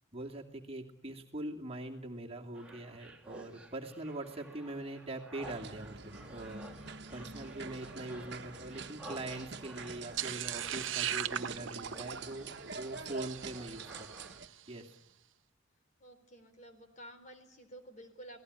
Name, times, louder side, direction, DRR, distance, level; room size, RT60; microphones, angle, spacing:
voice 1, 0.1-6.7 7.1-12.5 12.7-14.3 14.7-14.9, right 2 dB, 30° right, 1 dB, 2.6 m, -43 dB
sound 1, 2.5-14.4, right 1 dB, 5° right, 2.8 m, -53 dB
sound 2, 5.4-14.5, right 4 dB, 60° right, 1.6 m, -46 dB
sound 3, 10.2-14.5, right 10 dB, 85° right, 0.9 m, -39 dB
voice 2, 11.9-12.4 16.0-18.4, right 1 dB, 40° left, 8 dB, 4.0 m, -52 dB
28.0 x 19.0 x 9.7 m, 0.81 s
head